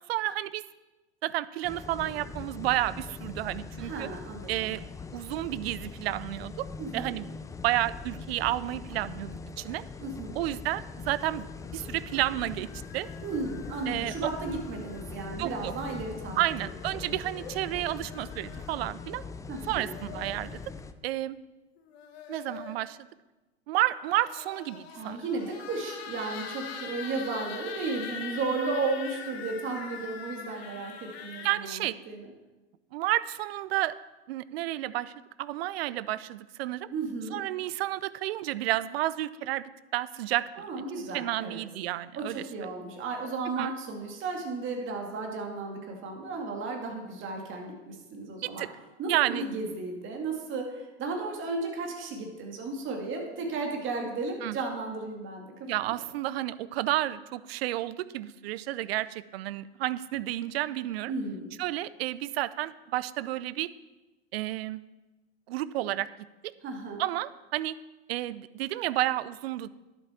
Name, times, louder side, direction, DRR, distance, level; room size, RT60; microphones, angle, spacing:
voice 1, 0.1-0.6 1.2-4.1 4.5-4.8 5.1-6.7 6.9-7.3 7.6-9.8 10.4-11.5 11.7-13.1 13.9-14.1 15.4-15.7 16.4-19.2 19.7-20.6 21.0-21.4 22.3-23.1 23.7-25.2 31.4-32.0 32.9-33.9 34.3-35.1 35.4-36.9 37.3-39.6 39.9-40.7 41.1-42.4 43.6-43.7 48.4-48.7 49.1-49.4 54.4-54.6 55.7-61.1 61.6-63.7 64.3-64.8 65.5-66.1 67.0-67.7 68.1-69.7, right 15 dB, 65° right, 17 dB, 0.5 m, -31 dB
sound 1, 1.6-20.9, left 4 dB, 10° left, 0.4 m, -42 dB
voice 2, 3.8-4.7 6.8-7.1 10.0-10.4 13.2-16.4 16.9-17.1 19.5-19.9 24.9-32.3 36.9-37.4 40.6-41.6 42.2-48.7 49.0-56.0 61.1-61.6 66.6-67.0, right 3 dB, 35° right, 2 dB, 2.1 m, -34 dB
sound 2, 11.6-15.3 16.5-18.8 19.7-20.7 21.8-22.9 23.9-31.5, left 6 dB, 65° left, 1.3 m, -44 dB
11.0 x 8.0 x 4.3 m, 1.1 s
hypercardioid pair, 85°, 33 cm